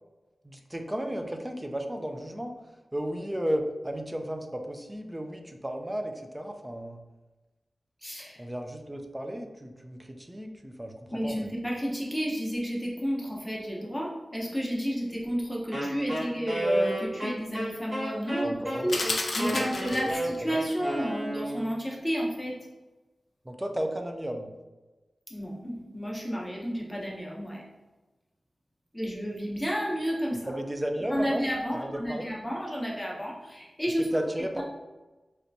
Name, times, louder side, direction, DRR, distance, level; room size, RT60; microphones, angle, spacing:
voice 1, 0.4-2.5 2.9-7.0 8.4-11.5 18.4-19.0 19.5-20.0 20.4-20.6 23.5-24.5 30.3-32.3 34.0-34.6, equal, 15° right, 4 dB, 0.4 m, -34 dB
voice 2, 8.0-8.4 11.1-18.5 18.8-19.0 19.3-22.5 25.3-27.6 28.9-30.5 31.1-34.0 34.6-34.7, equal, 5° left, -5 dB, 0.8 m, -31 dB
Wind instrument woodwind instrument, 15.7-21.8, right 1 dB, 40° right, 1.3 m, -32 dB
sound 1, 18.9-20.4, left 2 dB, 65° left, 0.4 m, -32 dB
3.3 x 2.9 x 2.6 m, 1.2 s
wide cardioid pair, 110°, 0 cm